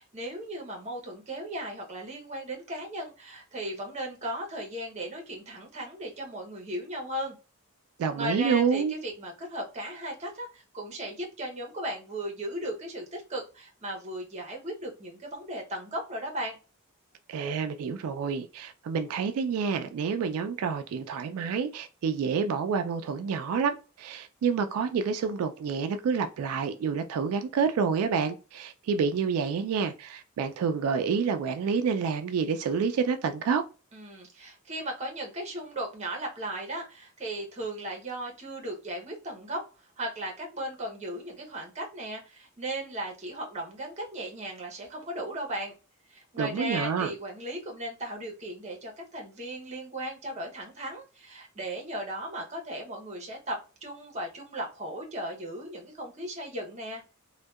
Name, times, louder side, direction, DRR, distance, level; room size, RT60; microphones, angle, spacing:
voice 1, 0.1-7.4 8.2-16.6 33.9-45.7 46.1-57.0, right 1 dB, 30° right, 0.7 m, -36 dB
voice 2, 8.0-8.9 17.3-33.6 46.4-47.1, right 6 dB, 90° right, 0.3 m, -28 dB
2.6 x 2.2 x 2.2 m
head